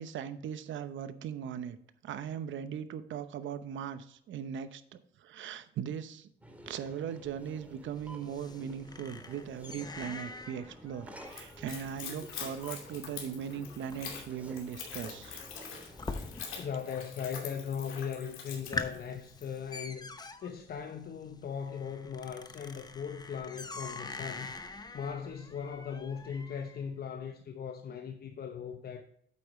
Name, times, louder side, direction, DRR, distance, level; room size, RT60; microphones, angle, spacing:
voice 1, 0.0-1.8 2.0-15.4, right 8 dB, 75° right, 0.9 m, -39 dB
sound 1, 6.4-17.1, equal, 5° right, 2.0 m, -52 dB
sound 2, 7.2-16.8 17.1-17.7 18.1-18.2 18.5-26.8, left 3 dB, 20° left, 0.9 m, -44 dB
Splash splatter / Trickle dribble, 11.2-19.6, left 6 dB, 80° left, 2.6 m, -45 dB
voice 2, 16.6-20.1 20.4-24.5 24.9-29.0, left 7 dB, 50° left, 0.9 m, -39 dB
8.5 x 8.4 x 3.2 m
cardioid pair, 90°, 20 cm